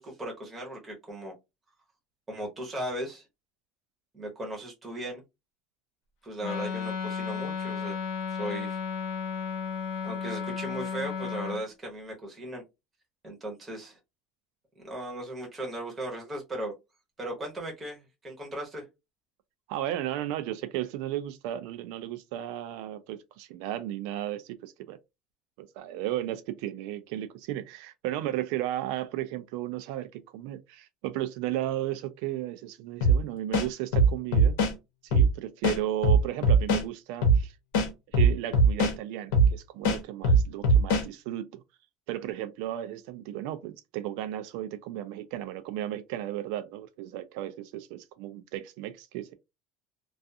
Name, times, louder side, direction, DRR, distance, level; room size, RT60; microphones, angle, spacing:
voice 1, 0.0-1.3 2.3-3.2 4.1-5.2 6.2-8.0 8.3-8.8 10.0-12.6 13.2-14.0 14.8-16.7 17.2-18.8, right 1 dB, 10° right, 0.8 m, -37 dB
Wind instrument woodwind instrument, 6.4-11.6, left 6 dB, 60° left, 0.5 m, -33 dB
voice 2, 19.7-25.0 25.6-34.6 35.0-37.5 38.1-41.6 42.1-49.3, right 13 dB, 60° right, 0.3 m, -34 dB
sound 1, 33.0-33.2 33.5-34.7 35.1-35.3 35.6-36.8 37.2-37.4 37.7-39.0 39.3-39.5 39.8-41.1, right 2 dB, 80° left, 0.9 m, -20 dB
2.4 x 2.3 x 2.6 m
cardioid pair, 180°, 0 cm